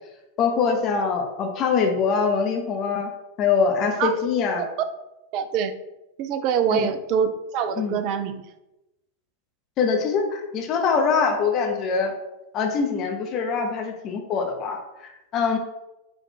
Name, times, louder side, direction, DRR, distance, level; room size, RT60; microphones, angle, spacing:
voice 1, 0.4-3.1 3.4-4.6 6.7-6.9 7.8-8.0 9.8-12.1 12.5-15.6, left 5 dB, 35° left, 3 dB, 0.6 m, -23 dB
voice 2, 5.3-5.7 6.2-8.4, right 7 dB, 40° right, 10 dB, 0.3 m, -24 dB
4.0 x 2.4 x 3.5 m, 0.95 s
figure-of-eight pair, 90°, 0 cm